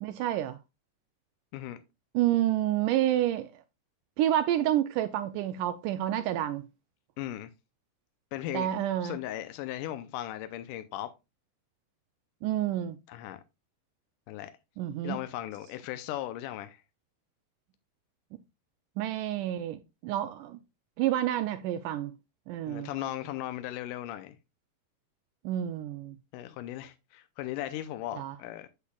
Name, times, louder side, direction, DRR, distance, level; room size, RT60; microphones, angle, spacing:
voice 1, 0.0-0.6 2.1-3.5 4.2-6.7 8.5-9.2 12.4-13.0 14.8-15.2 19.0-20.6 21.0-22.1 22.5-22.9 25.4-26.2 28.2-28.4, right 12 dB, 80° right, 1.9 m, -29 dB
voice 2, 7.2-7.5 8.3-8.7 9.0-11.1 13.1-13.4 14.3-14.5 15.0-16.8 22.7-24.4 26.3-28.7, left 13 dB, 80° left, 2.0 m, -37 dB
8.2 x 8.0 x 2.3 m
omnidirectional pair, 4.1 m